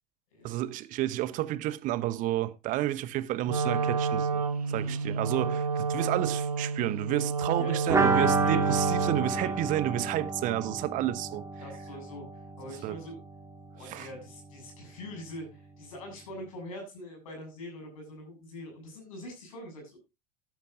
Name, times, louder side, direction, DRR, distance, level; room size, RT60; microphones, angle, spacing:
voice 1, 0.4-11.4 12.8-13.0 13.9-14.1, right 14 dB, 45° right, 0.9 m, -31 dB
Wind instrument woodwind instrument, 3.4-9.5, right 5 dB, 80° right, 0.8 m, -30 dB
sound 1, 7.9-13.5 13.8-13.9 14.1-14.2, right 3 dB, 15° right, 2.5 m, -30 dB
voice 2, 8.1-8.6 9.4-9.5 11.6-13.2 13.7-20.0, left 1 dB, 65° left, 7.3 m, -43 dB
14.0 x 12.0 x 2.7 m
figure-of-eight pair, 75°, 19 cm